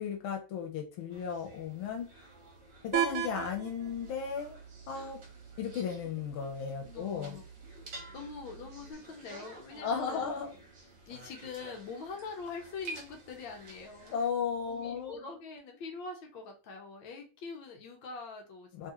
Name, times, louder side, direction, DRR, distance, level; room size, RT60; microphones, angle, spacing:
voice 1, 0.0-2.1 2.8-4.5 4.9-5.2 5.6-7.4 9.8-10.5 14.1-15.2 18.7-18.9, left 6 dB, 90° left, 2 dB, 1.5 m, -35 dB
sound 1, 1.1-14.3, right 2 dB, 50° right, 1.1 m, -51 dB
sound 2, 2.9-8.9, right 9 dB, 90° right, 1.5 m, -39 dB
voice 2, 6.8-7.5 8.1-10.3 11.0-14.2 14.6-18.9, left 4 dB, 75° left, 3 dB, 1.4 m, -44 dB
3.6 x 2.8 x 2.8 m, 0.35 s
omnidirectional pair, 2.3 m